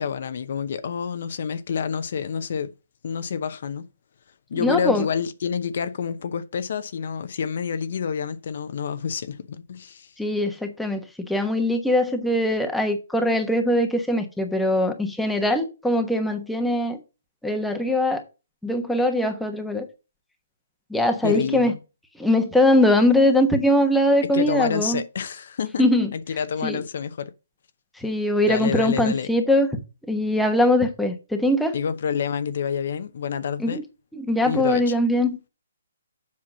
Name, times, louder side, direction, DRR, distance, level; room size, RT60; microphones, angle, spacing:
voice 1, 0.0-2.7 3.0-3.9 4.5-10.1 21.2-21.8 24.2-25.9 26.1-27.3 28.5-29.3 31.7-33.8 34.4-34.9, left 7 dB, 55° left, 0.8 m, -28 dB
voice 2, 4.5-5.0 10.2-17.0 17.4-18.2 18.6-19.9 20.9-21.7 22.2-25.0 25.8-26.1 26.6-26.8 28.0-29.8 30.1-31.7 33.6-33.8 34.1-35.4, left 1 dB, ahead, 1.1 m, -21 dB
7.5 x 5.8 x 6.2 m
hypercardioid pair, 160°, 0 cm